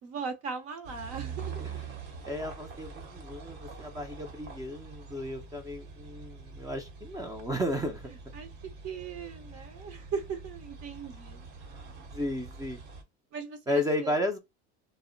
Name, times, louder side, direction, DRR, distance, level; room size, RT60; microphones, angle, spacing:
voice 1, 0.0-1.7 8.1-8.5 8.8-11.5 13.3-14.1, right 6 dB, 50° right, 0.8 m, -38 dB
sound 1, 0.8-13.0, right 5 dB, 70° right, 1.0 m, -44 dB
voice 2, 2.2-8.1 12.1-12.8 13.7-14.4, left 1 dB, 10° right, 0.4 m, -33 dB
2.0 x 2.0 x 3.7 m
supercardioid pair, 115°, 32 cm